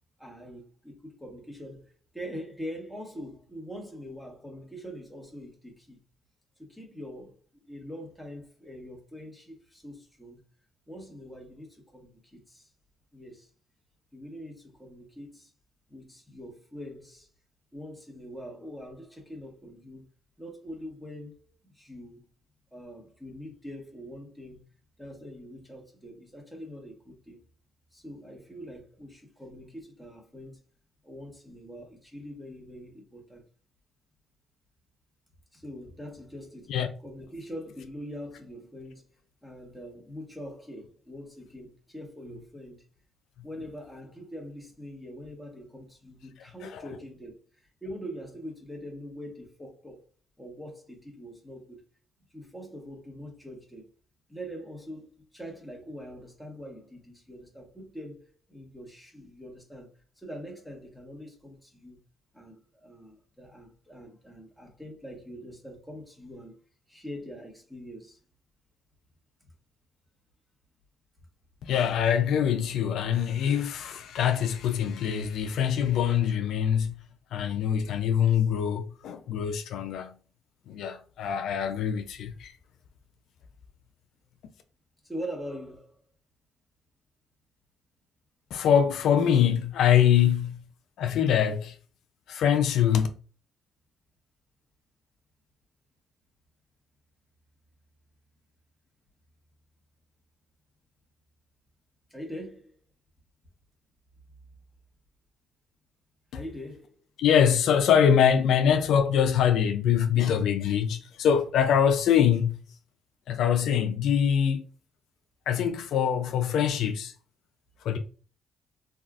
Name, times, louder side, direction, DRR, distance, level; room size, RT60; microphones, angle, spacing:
voice 1, 0.2-6.0 6.6-7.4 7.7-10.4 10.9-12.7 13.1-13.5 14.1-15.5 15.9-17.3 17.7-20.1 20.4-22.2 22.7-24.6 25.0-27.4 27.9-30.6 31.0-33.4 35.5-39.0 39.4-42.8 43.4-50.1 50.4-51.8 52.3-53.8 54.3-58.2 58.5-59.9 60.2-62.0 62.3-66.5 66.9-68.2 85.0-86.0 102.1-102.8 106.3-107.0, equal, ahead, 1.1 m, -43 dB
voice 2, 71.6-76.9 77.3-80.1 80.7-82.5 88.5-90.6 91.0-91.7 92.3-93.1 107.2-112.6 113.3-114.6 115.5-117.1 117.8-118.0, left 8 dB, 80° left, 0.4 m, -24 dB
3.4 x 2.3 x 2.4 m
cardioid pair, 90°, 0 cm